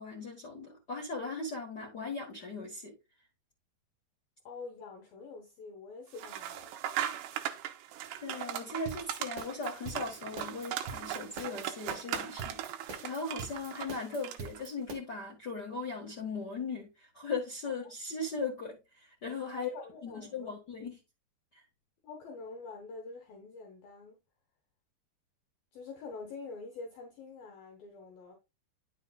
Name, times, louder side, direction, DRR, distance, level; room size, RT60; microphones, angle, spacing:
voice 1, 0.0-2.9 8.2-19.7 20.0-21.0 21.5-21.6, left 3 dB, 90° left, 0.9 m, -38 dB
voice 2, 4.4-6.8 19.5-20.5 22.0-24.2 25.7-28.4, left 4 dB, 65° left, 2.8 m, -46 dB
sound 1, 6.1-14.6, right 11 dB, 80° right, 2.9 m, -39 dB
sound 2, 8.9-14.9, right 4 dB, 55° right, 1.6 m, -43 dB
10.0 x 7.0 x 2.3 m
omnidirectional pair, 4.9 m